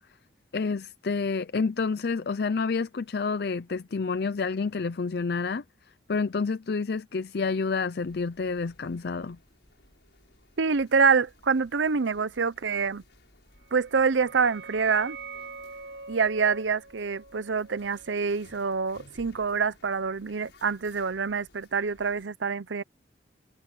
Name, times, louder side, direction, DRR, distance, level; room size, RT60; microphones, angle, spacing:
voice 1, 0.5-5.6 6.1-9.4, left 4 dB, 60° left, 0.5 m, -29 dB
sound 1, 8.0-22.3, left 2 dB, 80° left, 5.9 m, -58 dB
voice 2, 10.6-13.0 13.7-15.2 16.1-22.8, right 5 dB, 90° right, 0.7 m, -26 dB
sound 2, 13.6-19.1, right 4 dB, 75° right, 5.9 m, -44 dB
head